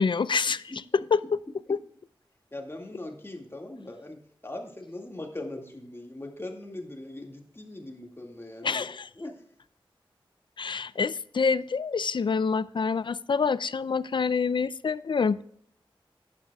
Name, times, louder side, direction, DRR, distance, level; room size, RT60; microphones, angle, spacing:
voice 1, 0.0-1.4 1.7-1.8 8.6-9.1 10.6-15.4, left 5 dB, 60° left, 17 dB, 0.4 m, -26 dB
voice 2, 2.5-4.2 4.4-8.8 9.2-9.3 10.6-10.8, left 1 dB, 25° left, 2 dB, 2.0 m, -40 dB
11.5 x 9.8 x 2.3 m, 0.68 s
wide cardioid pair, 80°, 9 cm